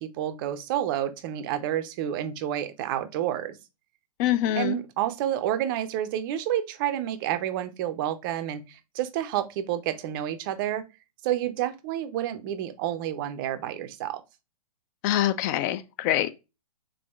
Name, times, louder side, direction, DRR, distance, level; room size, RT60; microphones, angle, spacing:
voice 1, 0.0-3.6 4.6-10.8 11.2-14.2, right 11 dB, 35° right, 0.5 m, -29 dB
voice 2, 4.2-4.8 15.0-16.3, left 12 dB, 30° left, 0.4 m, -25 dB
3.6 x 3.4 x 2.2 m
figure-of-eight pair, 120°, 20 cm